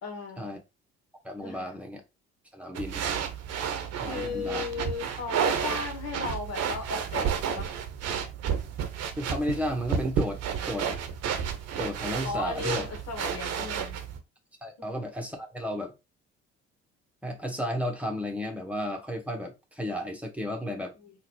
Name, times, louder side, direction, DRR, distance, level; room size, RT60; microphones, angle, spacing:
voice 1, 0.0-0.5 1.4-1.7 4.1-7.7 12.2-14.0 21.0-21.1, left 5 dB, 55° left, 1.5 m, -36 dB
voice 2, 1.2-2.0 2.5-3.0 4.0-4.6 9.2-10.9 11.8-12.9 14.6-15.9 17.2-20.9, equal, 5° right, 1.3 m, -33 dB
sound 1, 2.7-14.2, right 7 dB, 55° right, 0.8 m, -31 dB
3.8 x 2.7 x 3.1 m
hypercardioid pair, 55°, 31 cm